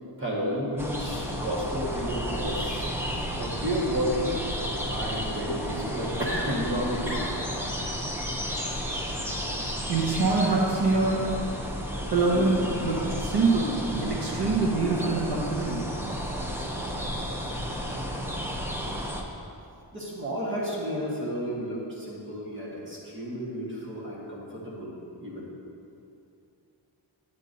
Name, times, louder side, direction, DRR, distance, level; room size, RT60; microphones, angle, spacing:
voice 1, 0.2-2.9 3.4-4.4 4.9-7.3 8.5-8.6 19.9-25.5, equal, 25° right, -5 dB, 1.4 m, -31 dB
sound 1, 0.8-19.2, equal, 5° right, 0.5 m, -32 dB
voice 2, 9.9-11.2 12.1-15.8, right 3 dB, 65° right, -4 dB, 1.2 m, -25 dB
9.7 x 8.1 x 2.6 m, 2.6 s
wide cardioid pair, 140°, 43 cm